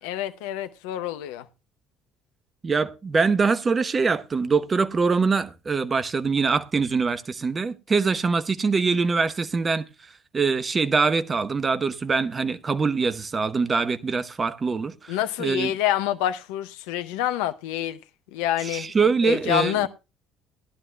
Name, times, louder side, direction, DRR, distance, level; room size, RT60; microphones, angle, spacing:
voice 1, 0.0-1.5 15.1-18.0 18.3-18.9 19.2-19.9, left 12 dB, 70° left, 0.6 m, -27 dB
voice 2, 2.6-9.9 10.3-15.7 18.6-19.9, right 4 dB, 30° right, 0.9 m, -23 dB
17.0 x 11.0 x 2.2 m
figure-of-eight pair, 55°, 0 cm